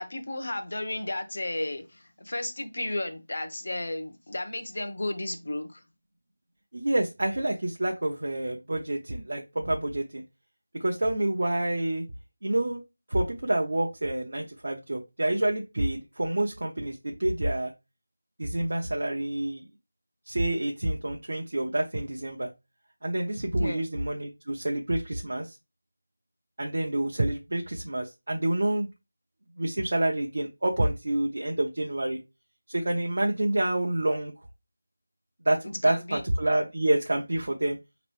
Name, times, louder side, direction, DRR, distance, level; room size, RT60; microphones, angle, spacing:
voice 1, 0.0-5.8 23.5-23.8 35.6-36.2, left 1 dB, 45° left, 0.8 m, -33 dB
voice 2, 6.7-10.2 10.8-12.0 12.4-12.8 13.1-17.7 18.4-19.6 20.3-22.5 23.0-25.6 26.6-28.9 29.6-32.2 32.7-34.3 35.4-35.6 35.8-37.8, right 1 dB, 50° right, 0.6 m, -28 dB
5.3 x 3.0 x 3.1 m
figure-of-eight pair, 180°, 0 cm